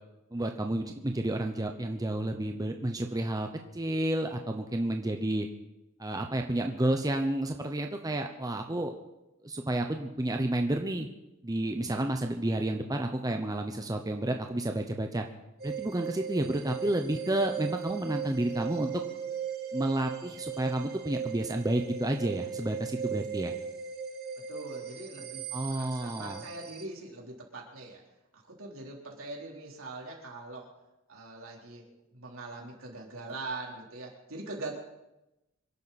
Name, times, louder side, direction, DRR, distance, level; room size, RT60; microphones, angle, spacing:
voice 1, 0.3-3.5 3.7-5.5 6.0-8.9 9.4-11.1 11.4-15.2 15.6-19.0 19.7-23.5 25.5-26.4, right 1 dB, 20° right, 4 dB, 0.9 m, -30 dB
sound 1, 15.6-26.8, right 8 dB, 50° right, 1.6 m, -38 dB
voice 2, 24.5-28.0 28.3-30.7 31.1-31.8 32.1-34.7, right 2 dB, 70° right, -1 dB, 3.8 m, -42 dB
26.0 x 11.5 x 4.3 m, 0.94 s
head